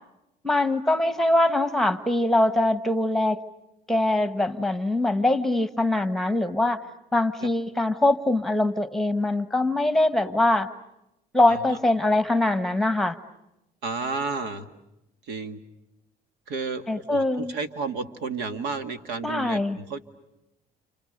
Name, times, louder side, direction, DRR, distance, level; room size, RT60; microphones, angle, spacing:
voice 1, 0.4-3.4 3.9-6.8 7.1-10.7 11.3-13.2 16.9-17.6 19.2-19.8, left 1 dB, ahead, 11 dB, 1.4 m, -23 dB
voice 2, 11.5-11.8 13.8-14.7 15.3-15.6 16.5-20.0, right 4 dB, 85° right, 9 dB, 2.1 m, -32 dB
30.0 x 29.0 x 6.7 m, 0.88 s
cardioid pair, 110°, 17 cm